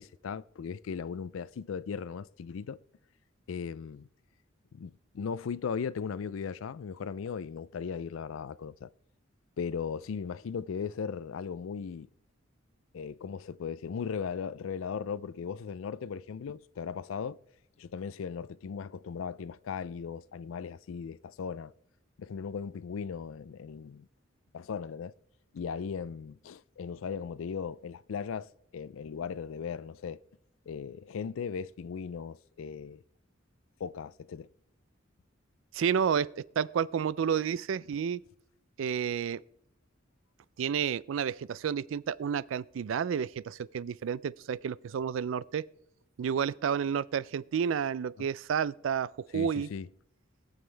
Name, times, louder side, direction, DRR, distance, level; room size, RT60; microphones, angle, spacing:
voice 1, 0.0-2.8 3.5-4.1 4.7-8.9 9.6-12.1 12.9-17.4 17.8-21.7 22.2-24.1 24.5-25.1 25.5-30.2 30.7-33.0 33.8-34.5 48.2-48.3 49.3-49.9, left 6 dB, 85° left, 0.4 m, -37 dB
voice 2, 35.7-38.2 38.8-39.4 40.6-45.7 46.2-49.7, right 7 dB, 70° right, 0.3 m, -30 dB
21.0 x 7.1 x 3.3 m
head